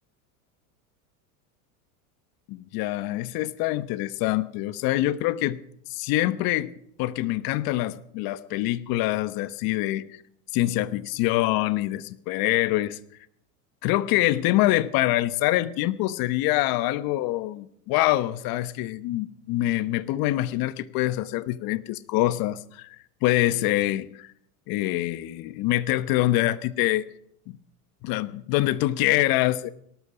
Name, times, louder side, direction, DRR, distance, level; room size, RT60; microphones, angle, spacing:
voice 1, 2.5-5.6 5.9-6.7 7.0-10.0 10.5-13.0 13.8-23.0 23.2-24.3 24.7-27.1 27.5-27.6 28.0-29.7, left 16 dB, 55° left, 16 dB, 1.1 m, -25 dB
18.5 x 13.0 x 4.9 m, 0.68 s
supercardioid pair, 115°, 43 cm